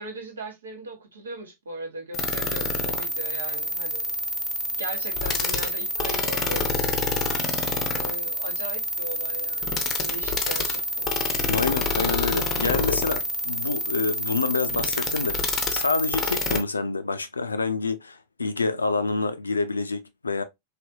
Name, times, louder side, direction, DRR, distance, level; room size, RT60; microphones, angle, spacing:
voice 1, 0.0-4.1 4.8-6.9 7.9-11.1, right 2 dB, 70° right, 1.1 m, -38 dB
sound 1, 2.1-16.6, left 2 dB, 30° left, 0.6 m, -27 dB
voice 2, 11.5-15.4 15.7-20.4, left 4 dB, 75° left, 0.4 m, -27 dB
3.3 x 2.8 x 2.6 m
figure-of-eight pair, 90°, 0 cm